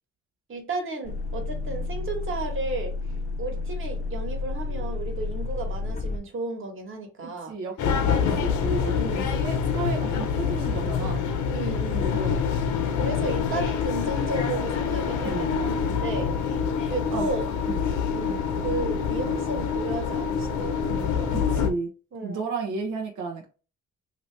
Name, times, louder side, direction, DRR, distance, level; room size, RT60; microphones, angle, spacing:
voice 1, 0.5-3.0 3.4-7.5 8.1-8.6 8.9-9.4 11.5-12.4 13.0-16.3 16.9-17.5 18.1-21.6 22.1-22.5, right 2 dB, 40° right, 1.4 m, -33 dB
sound 1, 1.0-6.2, left 3 dB, 25° left, 0.6 m, -31 dB
voice 2, 7.2-11.2 11.9-12.4 15.2-15.6 17.1-17.3 17.7-17.8 21.3-21.9 22.2-23.5, right 4 dB, 85° right, 0.9 m, -33 dB
sound 2, 7.8-21.7, left 6 dB, 75° left, 0.8 m, -26 dB
2.9 x 2.8 x 3.3 m
cardioid pair, 90°, 30 cm